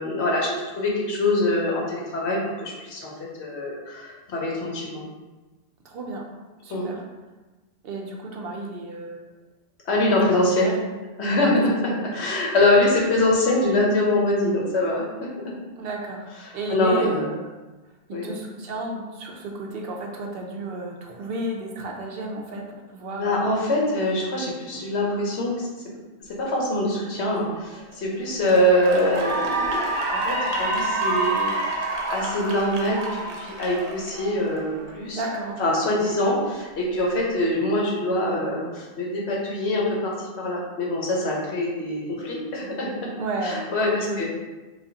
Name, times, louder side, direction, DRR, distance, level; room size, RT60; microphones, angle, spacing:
voice 1, 0.0-3.1 3.4-5.0 6.7-6.9 9.9-10.7 11.2-15.5 16.4-17.3 18.1-18.3 23.2-25.8 26.4-31.5 32.1-35.2 35.6-43.1 43.4-44.2, left 1 dB, 75° left, -3 dB, 1.1 m, -24 dB
voice 2, 5.8-6.2 6.6-7.0 7.8-9.3 10.1-10.8 11.3-12.0 15.8-16.3 16.5-17.4 18.1-23.5 35.1-35.6 43.2-43.6 43.9-44.2, right 2 dB, 65° right, 1 dB, 0.7 m, -32 dB
Cheering / Applause, 27.7-27.9 28.4-34.9, right 2 dB, 90° right, 1.0 m, -27 dB
4.8 x 2.3 x 2.7 m, 1.2 s
omnidirectional pair, 1.1 m